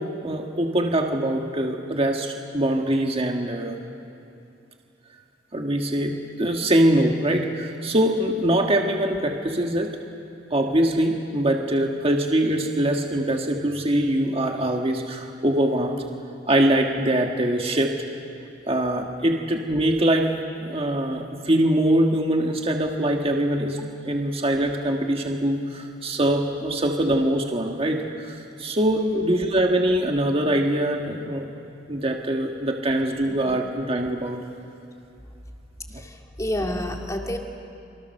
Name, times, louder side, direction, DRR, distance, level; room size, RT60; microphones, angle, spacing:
voice 1, 0.0-3.8 5.5-10.0 10.5-16.0 16.5-18.0 18.7-31.5 31.9-34.4, right 1 dB, 30° right, 2 dB, 1.7 m, -23 dB
voice 2, 28.9-29.3 35.9-37.4, left 1 dB, 20° left, 2 dB, 2.2 m, -29 dB
29.0 x 24.5 x 6.6 m, 2.7 s
head